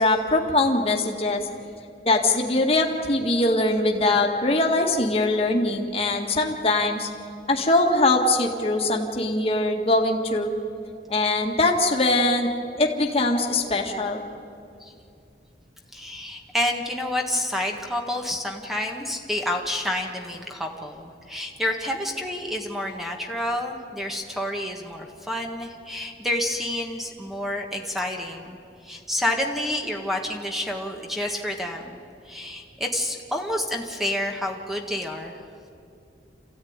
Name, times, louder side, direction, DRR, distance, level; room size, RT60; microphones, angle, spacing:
voice 1, 0.0-1.4 2.1-7.1 7.5-10.5 11.1-12.5 12.8-14.2, left 2 dB, 35° left, 1 dB, 1.9 m, -22 dB
voice 2, 15.9-28.6 28.8-32.0 32.2-35.4, left 1 dB, ahead, 2 dB, 1.6 m, -29 dB
27.5 x 15.0 x 9.6 m, 2.6 s
head